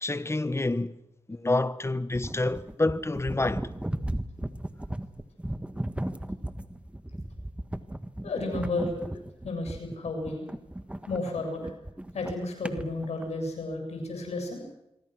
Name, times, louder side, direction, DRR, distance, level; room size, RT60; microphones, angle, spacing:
voice 1, 0.0-1.0 1.3-3.6, left 2 dB, 25° left, 1.3 m, -28 dB
sound 1, 2.1-13.3, right 1 dB, 10° right, 1.7 m, -36 dB
voice 2, 8.2-9.2 9.4-10.4 11.1-11.7 12.1-14.6, left 2 dB, 85° left, 7.3 m, -32 dB
26.5 x 23.5 x 6.3 m
cardioid pair, 60°, 11 cm